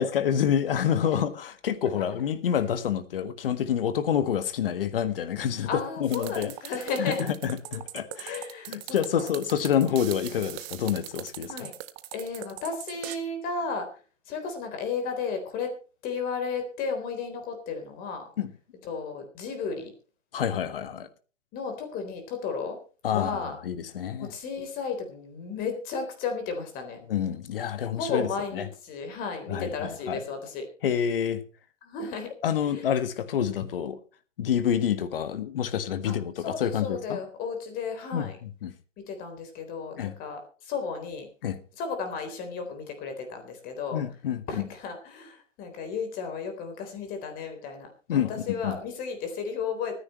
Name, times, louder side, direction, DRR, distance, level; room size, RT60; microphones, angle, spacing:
voice 1, 0.0-5.7 6.0-6.5 7.0-8.4 8.7-11.7 18.4-18.5 20.3-21.1 23.0-24.3 27.1-28.3 28.5-28.6 29.5-30.2 30.8-31.4 32.4-34.0 34.4-37.2 38.1-38.7 40.0-40.1 41.4-41.6 43.9-44.7 48.1-48.8, left 9 dB, 45° left, 1.7 m, -28 dB
voice 2, 5.7-7.2 7.7-7.8 8.1-9.3 11.5-11.7 12.1-13.9 14.3-15.8 16.0-18.3 18.8-19.9 21.5-22.8 23.1-23.6 24.2-27.0 28.0-30.7 31.8-32.3 32.6-32.8 36.1-38.4 39.0-41.3 41.8-44.0 44.5-50.0, left 5 dB, 25° left, 3.8 m, -34 dB
sound 1, 6.1-13.2, right 16 dB, 15° right, 0.6 m, -40 dB
24.5 x 10.0 x 3.1 m
figure-of-eight pair, 130°, 37 cm